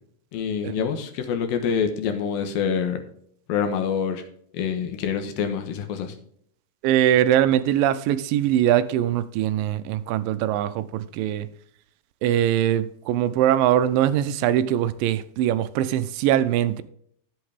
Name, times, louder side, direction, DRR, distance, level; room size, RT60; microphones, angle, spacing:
voice 1, 0.3-3.0 3.5-4.2 4.5-6.1, left 7 dB, 80° left, 3.0 m, -26 dB
voice 2, 6.8-11.5 12.2-16.8, right 11 dB, 80° right, 2.2 m, -22 dB
11.0 x 7.9 x 3.5 m
omnidirectional pair, 4.1 m